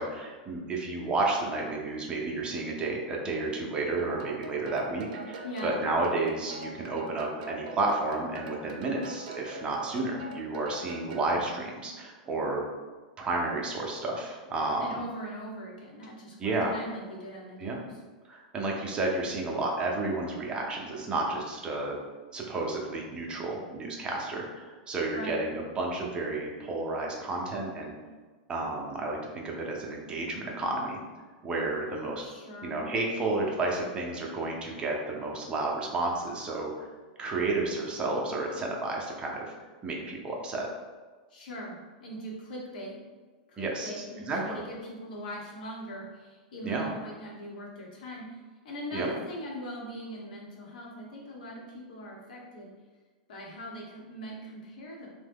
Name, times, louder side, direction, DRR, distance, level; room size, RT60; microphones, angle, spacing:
voice 1, 0.0-12.6 13.2-14.9 16.4-16.7 17.6-17.8 18.2-22.0 22.3-27.9 28.5-31.0 31.4-32.2 32.6-36.9 37.2-39.5 39.8-40.7 43.6-44.6 46.6-46.9 48.9-49.1, right 2 dB, 20° right, -1 dB, 0.5 m, -31 dB
sound 1, 4.0-11.3, right 2 dB, 65° right, 0.5 m, -43 dB
voice 2, 5.4-5.8 14.8-18.0 25.1-25.4 32.2-32.8 41.3-43.0 43.5-48.4 48.6-52.7 53.3-55.1, equal, 75° left, -2 dB, 0.9 m, -41 dB
2.8 x 2.1 x 3.4 m, 1.4 s
hypercardioid pair, 125°, 5 cm